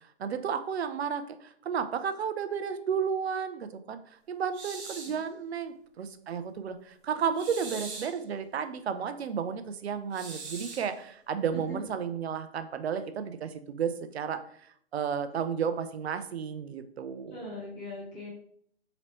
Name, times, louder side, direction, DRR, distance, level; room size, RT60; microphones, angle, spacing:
voice 1, 0.0-17.4, right 7 dB, 75° right, 10 dB, 0.5 m, -33 dB
sound 1, 4.5-5.2 7.3-8.2 10.1-10.9, right 4 dB, 45° right, 0.9 m, -41 dB
voice 2, 17.3-18.3, left 1 dB, 10° left, -6 dB, 0.4 m, -40 dB
3.0 x 2.9 x 3.0 m, 0.64 s
hypercardioid pair, 150°, 32 cm